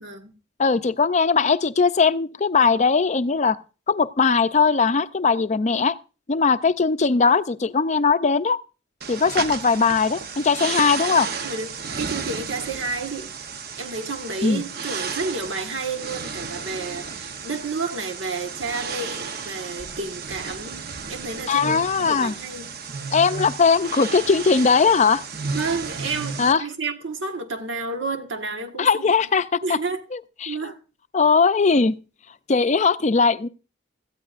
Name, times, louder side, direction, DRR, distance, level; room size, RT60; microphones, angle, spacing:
voice 1, 0.0-0.3 1.4-1.5 11.4-13.3 13.8-22.7 25.5-29.0 29.6-30.0 30.4-30.8, right 3 dB, 75° right, 1.4 m, -31 dB
voice 2, 0.6-3.6 3.9-5.9 6.3-8.6 9.1-11.3 14.4-14.6 21.5-22.3 23.1-25.2 26.4-26.6 28.8-29.8 30.1-30.6 31.1-31.9 32.5-33.5, left 5 dB, 35° left, 0.5 m, -19 dB
sound 1, 9.0-26.5, right 5 dB, 55° right, 0.9 m, -33 dB
17.5 x 13.5 x 2.5 m
head